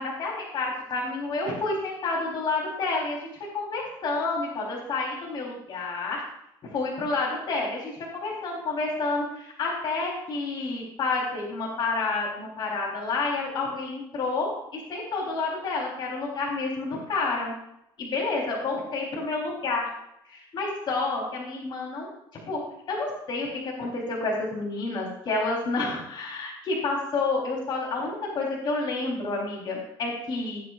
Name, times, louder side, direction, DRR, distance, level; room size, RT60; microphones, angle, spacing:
voice 1, 0.0-3.2 3.5-6.2 6.6-17.5 18.0-19.9 20.3-22.1 22.5-22.6 22.9-30.6, left 3 dB, 50° left, -3 dB, 3.7 m, -29 dB
18.5 x 8.6 x 2.5 m, 0.81 s
supercardioid pair, 95°, 10 cm